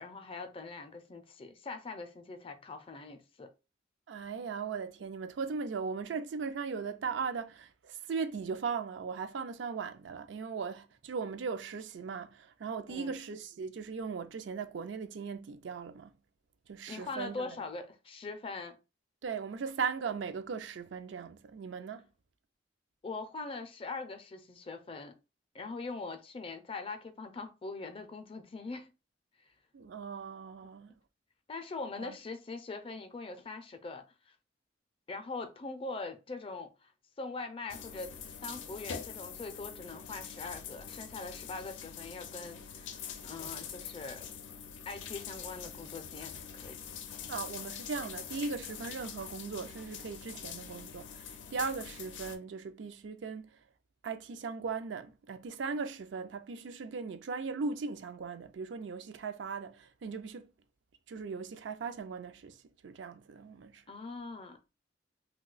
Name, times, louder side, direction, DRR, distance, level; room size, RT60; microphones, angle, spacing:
voice 1, 0.0-3.5 12.9-13.2 16.9-18.8 23.0-25.1 25.5-28.9 31.5-34.3 35.1-36.9 37.2-38.1 38.4-44.3 44.9-46.8 63.9-64.6, left 3 dB, 30° left, 0.4 m, -42 dB
voice 2, 4.1-16.1 16.7-17.6 19.2-22.1 29.7-31.0 32.0-32.2 47.3-53.5 54.0-60.5 61.1-63.8, right 5 dB, 75° right, 0.4 m, -38 dB
sound 1, 37.7-52.4, left 7 dB, 85° left, 0.5 m, -44 dB
2.6 x 2.2 x 3.8 m
head